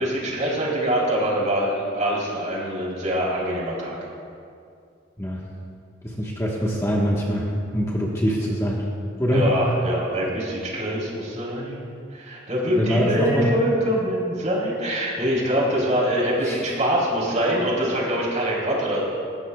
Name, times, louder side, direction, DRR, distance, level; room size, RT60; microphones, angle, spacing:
voice 1, 0.0-4.0 9.3-19.0, equal, 40° right, -4 dB, 3.8 m, -24 dB
voice 2, 6.0-8.8 9.2-9.5 12.8-13.5 16.4-16.7, equal, 15° left, -4 dB, 1.4 m, -24 dB
19.5 x 16.5 x 2.4 m, 2.4 s
head